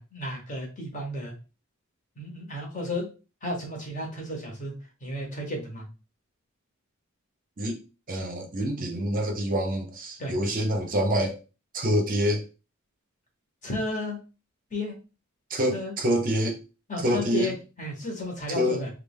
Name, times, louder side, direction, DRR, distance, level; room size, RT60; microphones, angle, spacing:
voice 1, 0.0-1.3 2.2-3.1 3.4-4.7 5.0-5.8 10.2-10.3 13.6-14.2 14.7-15.0 15.7-15.9 16.9-18.9, left 1 dB, 35° left, 1.1 m, -33 dB
voice 2, 8.1-11.4 11.7-12.4 15.5-16.6 17.0-17.5 18.5-18.8, equal, 40° right, 0.6 m, -26 dB
3.3 x 2.4 x 3.5 m
head